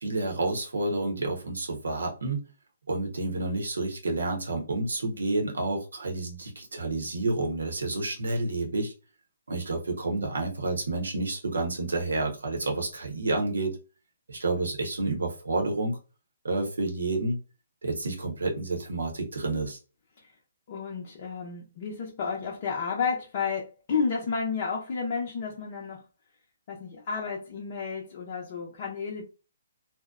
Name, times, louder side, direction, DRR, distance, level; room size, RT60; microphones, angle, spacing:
voice 1, 0.0-2.4 2.9-8.9 9.5-13.7 14.3-16.0 16.4-17.4 17.8-19.8, right 2 dB, 80° right, 0.8 m, -29 dB
voice 2, 20.7-26.0 26.7-29.2, left 5 dB, 45° left, 0.6 m, -31 dB
2.6 x 2.0 x 2.4 m
hypercardioid pair, 140°, 0 cm